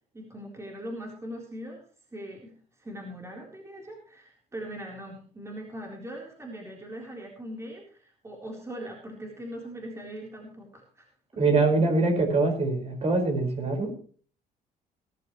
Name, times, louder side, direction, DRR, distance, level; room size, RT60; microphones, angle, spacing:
voice 1, 0.1-1.8 2.1-2.5 2.8-11.1, equal, 15° right, -1 dB, 4.0 m, -40 dB
voice 2, 11.4-13.9, right 3 dB, 40° right, 3 dB, 5.2 m, -24 dB
21.0 x 12.0 x 3.2 m, 0.43 s
cardioid pair, 110°, 17 cm